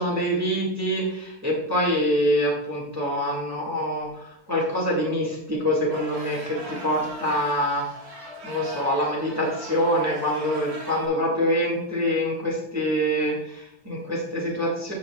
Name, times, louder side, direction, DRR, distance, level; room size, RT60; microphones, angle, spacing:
voice 1, 0.0-4.1 4.5-7.9 8.4-14.9, equal, 10° right, -3 dB, 0.8 m, -25 dB
sound 1, 5.9-11.1, equal, 50° right, 2.3 m, -40 dB
13.5 x 5.9 x 2.3 m, 0.83 s
omnidirectional pair, 3.4 m